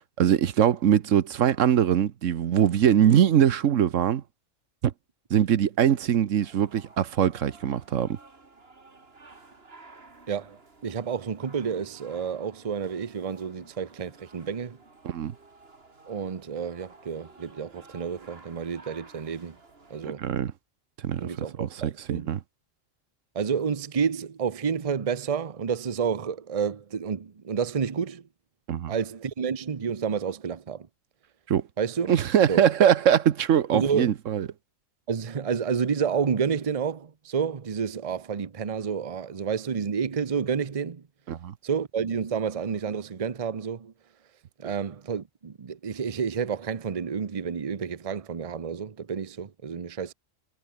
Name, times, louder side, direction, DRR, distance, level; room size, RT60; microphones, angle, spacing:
voice 1, 0.2-4.2 4.8-4.9 5.3-8.2 15.0-15.3 20.0-20.5 21.0-21.3 21.6-22.4 28.7-28.9 31.5-31.6 32.1-34.5 41.3-41.5, right 9 dB, 75° right, 1.2 m, -22 dB
sound 1, 6.4-20.1, right 3 dB, 50° right, 2.8 m, -53 dB
voice 2, 10.3-14.8 16.1-19.6 19.9-20.3 21.2-22.3 23.3-28.3 28.9-30.9 31.8-32.1 32.5-32.7 33.7-34.1 35.1-41.0 41.6-43.9 44.6-50.1, right 6 dB, 30° right, 0.8 m, -30 dB
omnidirectional pair, 1.3 m